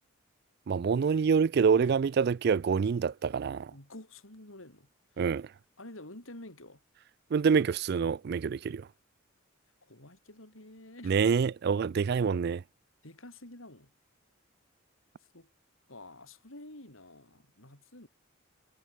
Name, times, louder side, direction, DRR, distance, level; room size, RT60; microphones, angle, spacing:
voice 1, 0.7-3.7 5.2-5.5 7.3-8.9 11.0-12.6, right 6 dB, 50° right, 0.3 m, -26 dB
voice 2, 3.7-4.9 5.1-5.3 5.8-6.8 9.9-11.2 13.0-13.9 15.3-15.5 15.9-18.1, left 1 dB, 85° left, 6.6 m, -49 dB
head